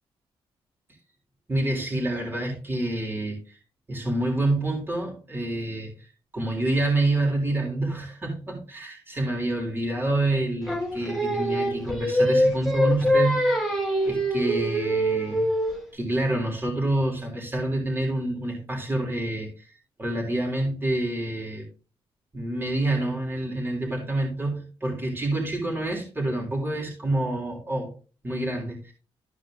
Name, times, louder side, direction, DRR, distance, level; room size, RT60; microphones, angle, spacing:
voice 1, 1.5-3.6 3.9-6.1 6.3-15.5 15.9-19.7 20.0-21.6 22.3-27.9 28.2-28.9, right 1 dB, 20° right, -1 dB, 3.5 m, -27 dB
Singing, 10.7-15.9, equal, 5° left, 2.6 m, -24 dB
13.5 x 4.8 x 3.8 m, 0.35 s
cardioid pair, 120°, 10 cm